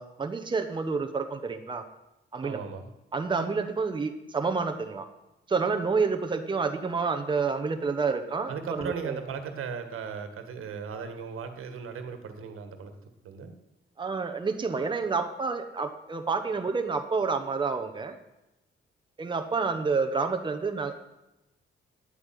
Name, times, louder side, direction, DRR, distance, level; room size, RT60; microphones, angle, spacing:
voice 1, 0.0-1.8 2.3-2.6 3.1-5.1 5.5-9.2 14.0-18.2 19.2-21.0, right 4 dB, 20° right, 5 dB, 1.0 m, -29 dB
voice 2, 2.4-2.9 8.5-12.9 13.2-13.6, right 6 dB, 90° right, 7 dB, 1.7 m, -37 dB
10.0 x 8.7 x 9.4 m, 0.94 s
wide cardioid pair, 130°, 21 cm